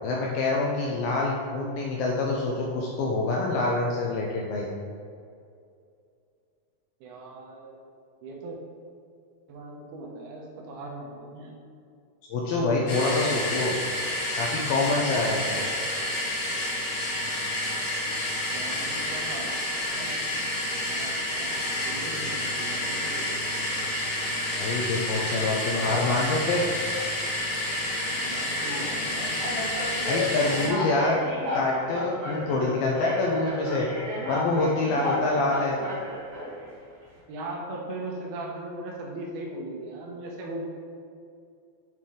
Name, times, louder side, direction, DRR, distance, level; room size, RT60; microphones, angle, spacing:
voice 1, 0.0-4.7 12.3-13.8 14.4-15.4 24.6-26.6 30.0-31.2 31.5-33.9 34.3-35.8, left 3 dB, 80° left, -2 dB, 2.2 m, -26 dB
voice 2, 7.0-7.8 8.2-8.6 9.5-11.5 18.5-20.3 20.9-21.6 21.9-23.3 25.7-26.4 28.2-29.3 35.1-35.5 37.3-40.6, right 2 dB, 75° right, -2 dB, 2.7 m, -39 dB
sound 1, 12.9-30.7, left 1 dB, 55° left, 2.2 m, -29 dB
sound 2, 26.7-26.9 27.6-27.8 28.7-28.8 29.4-36.7, left 2 dB, 55° right, 1.1 m, -33 dB
9.1 x 4.3 x 3.7 m, 2.4 s
omnidirectional pair, 4.9 m